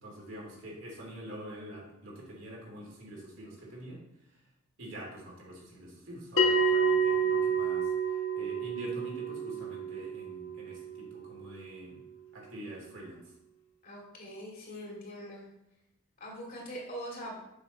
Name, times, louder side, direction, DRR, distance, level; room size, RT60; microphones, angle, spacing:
voice 1, 0.0-4.0 4.8-12.0 12.3-13.2, right 1 dB, 65° right, -3 dB, 2.9 m, -45 dB
Bell, 6.4-11.4, right 4 dB, 70° left, 1.2 m, -29 dB
voice 2, 13.8-15.5 16.2-17.4, equal, 45° left, -3 dB, 2.5 m, -42 dB
7.1 x 6.3 x 4.3 m, 0.82 s
head